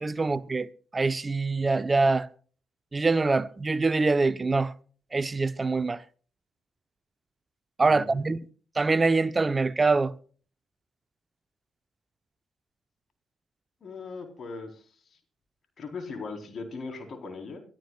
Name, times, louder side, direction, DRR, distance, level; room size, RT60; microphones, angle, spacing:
voice 1, 0.0-2.3 2.9-4.7 5.1-6.0 7.8-8.4 8.8-10.1, right 3 dB, 30° right, 1.0 m, -24 dB
voice 2, 7.8-8.2 13.8-14.8 15.8-17.6, left 4 dB, 55° left, 4.4 m, -39 dB
24.0 x 13.5 x 2.5 m
hypercardioid pair, 45°, 0 cm